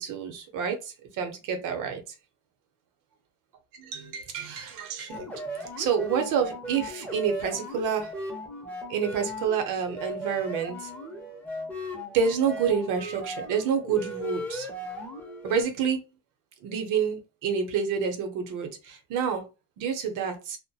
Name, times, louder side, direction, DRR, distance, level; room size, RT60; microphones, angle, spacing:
voice 1, 0.0-2.0 3.8-5.3 5.6-8.1 8.9-10.9 12.1-14.7 15.4-16.0 16.6-19.4 19.8-20.6, right 7 dB, 80° right, 6 dB, 0.7 m, -28 dB
sound 1, 5.1-15.6, equal, 5° left, 0.5 m, -37 dB
2.2 x 2.1 x 2.6 m, 0.29 s
cardioid pair, 160°, 31 cm